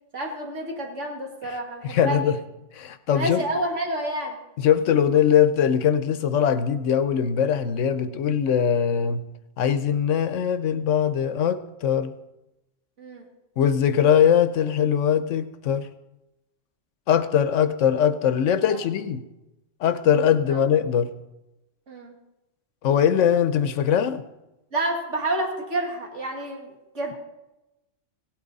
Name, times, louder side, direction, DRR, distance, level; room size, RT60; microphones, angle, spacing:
voice 1, 0.1-2.3 3.1-4.4 13.0-13.3 18.7-18.8 21.9-22.1 24.7-27.1, right 1 dB, 75° right, 1 dB, 2.2 m, -29 dB
voice 2, 1.8-2.4 2.7-3.4 4.6-9.2 9.6-12.2 13.6-15.9 17.1-19.2 19.8-21.1 22.8-24.2, left 8 dB, 85° left, 12 dB, 1.1 m, -21 dB
16.5 x 8.8 x 4.0 m, 0.96 s
omnidirectional pair, 1.3 m